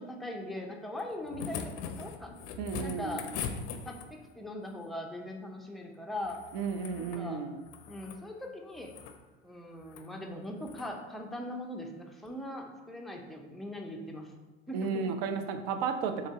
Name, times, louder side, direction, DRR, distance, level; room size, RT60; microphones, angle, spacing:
voice 1, 0.0-2.3 2.8-3.3 3.9-6.4 7.0-7.4 7.9-8.9 9.4-14.3 14.7-15.1, left 1 dB, ahead, 1 dB, 0.5 m, -40 dB
sound 1, 1.0-4.3 6.2-7.3 7.6-8.2 8.7-9.2 9.8-10.1 10.6-10.9 12.3-12.4, left 6 dB, 55° left, 0.5 m, -41 dB
voice 2, 2.6-3.2 6.5-7.6 14.7-16.3, right 5 dB, 60° right, 8 dB, 0.5 m, -33 dB
3.9 x 2.9 x 3.5 m, 1.2 s
hypercardioid pair, 75°, 33 cm